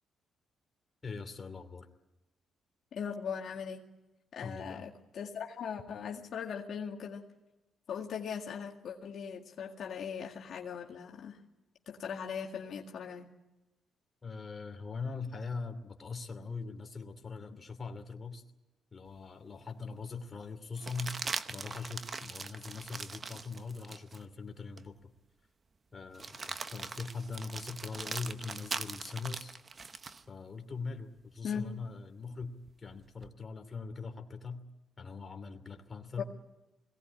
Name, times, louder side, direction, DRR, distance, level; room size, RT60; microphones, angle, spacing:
voice 1, 1.0-1.9 4.4-4.8 14.2-18.4 18.9-25.1 25.9-29.5 30.3-34.7 35.0-36.2, left 4 dB, 30° left, 6 dB, 2.8 m, -42 dB
voice 2, 2.9-3.8 4.3-7.2 7.9-11.4 11.9-13.3 31.4-31.7 36.2-36.3, left 7 dB, 60° left, 1 dB, 2.0 m, -39 dB
sound 1, 19.2-19.3 20.8-24.2 24.8-24.9 26.1-30.2 32.4-33.3, right 4 dB, 35° right, 1.0 m, -41 dB
21.5 x 18.0 x 9.9 m, 1.0 s
cardioid pair, 90°, 0 cm